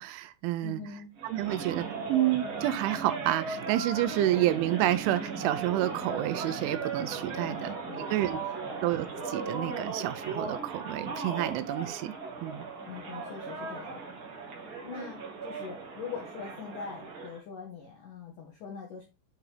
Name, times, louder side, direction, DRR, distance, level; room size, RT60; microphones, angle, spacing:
voice 1, 0.0-0.8 1.2-8.4 8.8-12.2 12.4-12.6, right 14 dB, 80° right, 3.0 m, -29 dB
voice 2, 0.6-1.2 7.4-8.8 12.9-14.0 14.8-19.1, left 6 dB, 75° left, 2.0 m, -43 dB
sound 1, 1.2-17.4, right 4 dB, 60° right, 1.3 m, -37 dB
9.0 x 5.8 x 3.3 m
omnidirectional pair, 5.7 m